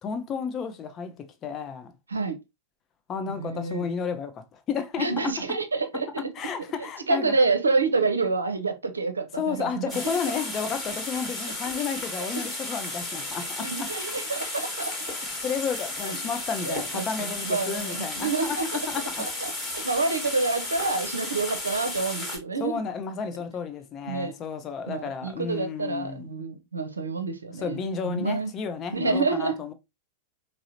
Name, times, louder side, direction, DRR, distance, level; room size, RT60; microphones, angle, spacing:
voice 1, 0.0-1.9 3.1-5.1 6.4-7.3 9.4-13.9 15.4-19.2 22.6-26.3 27.5-29.7, left 6 dB, 30° left, 0.6 m, -32 dB
voice 2, 3.3-3.9 5.0-6.1 7.1-9.9 12.3-12.5 13.6-14.9 16.0-16.2 16.6-18.8 19.2-22.8 24.1-24.3 24.9-28.5 28.9-29.7, right 3 dB, 75° right, 0.6 m, -28 dB
sound 1, 9.9-22.4, left 2 dB, 10° left, 1.2 m, -34 dB
4.8 x 2.1 x 2.7 m
figure-of-eight pair, 90°, 0 cm